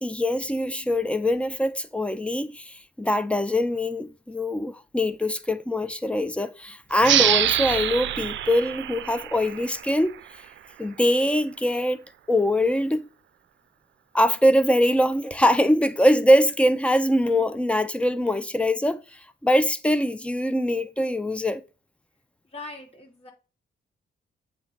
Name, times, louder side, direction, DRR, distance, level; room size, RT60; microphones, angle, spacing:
voice 1, 0.0-10.2 10.8-12.0 12.3-13.0 14.1-19.0 19.4-21.6, left 1 dB, 5° left, 0.7 m, -23 dB
sound 1, 7.0-10.3, right 12 dB, 75° right, 0.5 m, -25 dB
voice 2, 22.4-23.3, left 3 dB, 30° left, 3.2 m, -41 dB
8.3 x 3.4 x 5.7 m
cardioid pair, 100°, 20 cm